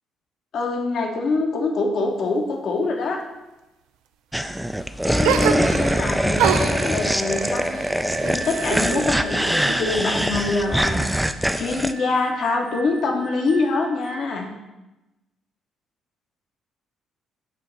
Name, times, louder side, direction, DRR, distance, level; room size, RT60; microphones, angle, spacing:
voice 1, 0.5-3.2 5.0-7.9 8.2-11.1 11.6-14.5, left 3 dB, 60° left, 2 dB, 0.9 m, -24 dB
sound 1, 4.3-11.9, right 1 dB, 5° right, 0.4 m, -23 dB
sound 2, 5.2-6.0 6.4-9.1 9.4-10.3, right 9 dB, 75° right, 0.3 m, -26 dB
sound 3, 6.4-14.5, right 3 dB, 60° right, 1.9 m, -39 dB
7.4 x 2.9 x 5.3 m, 1.0 s
hypercardioid pair, 50°, 0 cm